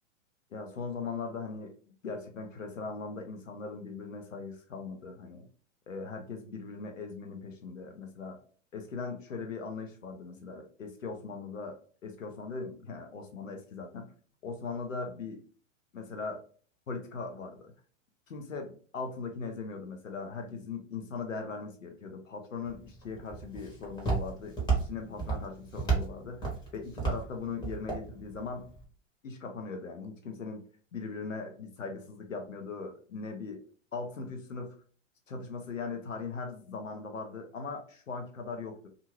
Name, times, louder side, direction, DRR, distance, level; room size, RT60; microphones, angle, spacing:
voice 1, 0.5-1.7 2.0-5.5 5.9-8.4 8.7-14.1 14.4-15.4 15.9-16.4 16.9-17.7 18.3-28.7 29.2-30.6 30.9-33.6 33.9-34.7 35.3-38.9, left 4 dB, 75° left, 3 dB, 1.0 m, -39 dB
Walk footsteps, 22.6-28.8, right 4 dB, 10° left, 1.1 m, -34 dB
2.7 x 2.5 x 3.0 m, 0.44 s
figure-of-eight pair, 105°, 39 cm